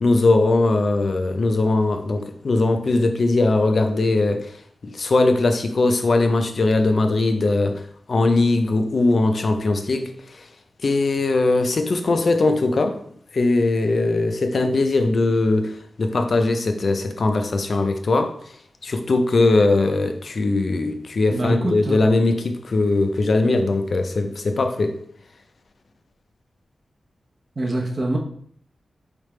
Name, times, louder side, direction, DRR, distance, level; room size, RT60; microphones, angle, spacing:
voice 1, 0.0-4.6 4.8-7.8 8.1-10.5 10.8-13.0 13.3-18.3 18.8-24.9, left 2 dB, 45° left, 7 dB, 0.5 m, -20 dB
voice 2, 21.3-21.9 27.6-28.2, right 1 dB, 40° right, 0 dB, 0.8 m, -24 dB
4.8 x 3.3 x 3.2 m, 0.63 s
wide cardioid pair, 165°, 0 cm